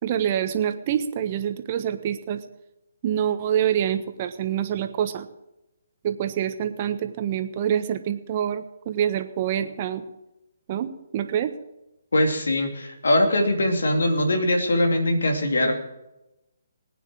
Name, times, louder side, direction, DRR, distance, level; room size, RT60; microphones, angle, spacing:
voice 1, 0.0-2.4 3.0-5.3 6.0-10.0 10.7-11.5, right 9 dB, 40° right, 9 dB, 1.3 m, -26 dB
voice 2, 12.1-15.7, left 1 dB, 75° left, 4 dB, 2.8 m, -21 dB
20.0 x 9.4 x 4.8 m, 0.94 s
figure-of-eight pair, 140°, 0 cm